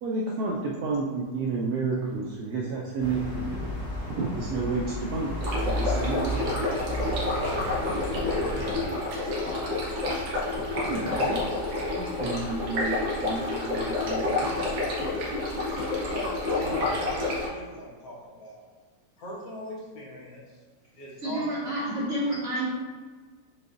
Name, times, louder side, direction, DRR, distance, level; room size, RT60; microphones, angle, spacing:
voice 1, 0.0-3.7 4.1-6.6 10.7-11.4 12.0-14.7, right 3 dB, 70° right, -3 dB, 0.9 m, -31 dB
sound 1, 3.0-8.7, equal, 20° left, 1.1 m, -33 dB
sound 2, 5.4-17.5, left 2 dB, 55° right, 1.2 m, -29 dB
voice 2, 6.3-11.8 16.1-18.6 19.2-20.6 20.9-21.6, equal, 75° left, -5 dB, 1.7 m, -41 dB
voice 3, 21.2-22.7, right 1 dB, 35° right, -11 dB, 1.8 m, -29 dB
6.6 x 2.5 x 2.5 m, 1.4 s
omnidirectional pair, 2.0 m